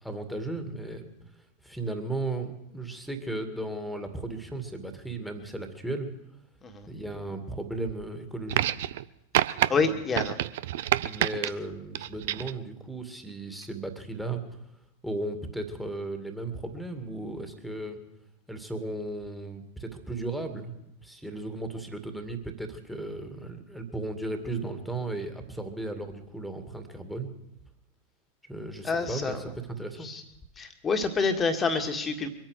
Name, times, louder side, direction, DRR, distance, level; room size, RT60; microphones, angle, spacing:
voice 1, 0.0-1.1 1.6-6.1 6.9-8.7 9.7-10.0 11.0-14.4 15.0-18.0 18.5-20.7 21.0-27.3 28.5-29.4 29.8-30.1, right 2 dB, ahead, 8 dB, 2.2 m, -35 dB
sound 1, 8.5-9.0 9.3-9.7 10.1-11.5 12.0-12.6 13.6-13.7, right 13 dB, 55° right, 0.5 m, -27 dB
voice 2, 9.4-10.4 28.8-29.4 30.0-30.2 30.6-32.3, left 4 dB, 20° left, 6 dB, 2.0 m, -28 dB
23.5 x 9.1 x 6.6 m, 0.84 s
figure-of-eight pair, 90°, 0 cm